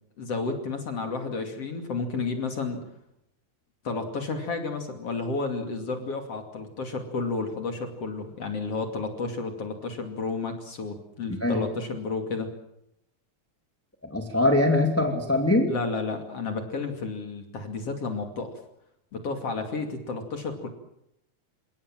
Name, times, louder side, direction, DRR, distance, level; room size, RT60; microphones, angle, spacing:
voice 1, 0.2-2.8 3.9-12.5 15.7-18.5 19.1-20.7, left 4 dB, 55° left, 5 dB, 3.5 m, -31 dB
voice 2, 14.1-15.7, left 2 dB, 5° left, 3 dB, 2.4 m, -22 dB
30.0 x 17.5 x 7.5 m, 0.79 s
omnidirectional pair, 3.4 m